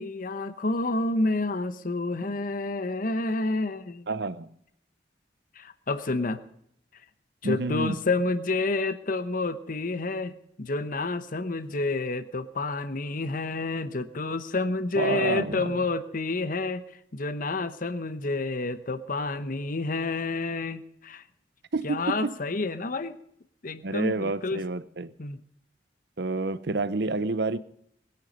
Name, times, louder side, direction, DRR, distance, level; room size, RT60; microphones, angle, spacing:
voice 1, 0.0-4.1 5.6-6.4 7.4-10.3 10.6-16.8 17.1-21.2 21.8-23.2 23.6-24.6 25.2-25.4, left 3 dB, 50° left, 0.9 m, -29 dB
voice 2, 4.1-4.5 7.4-8.0 15.0-15.9 21.7-22.4 23.8-25.1 26.2-27.6, right 3 dB, 65° right, 0.8 m, -29 dB
20.5 x 10.5 x 5.3 m
head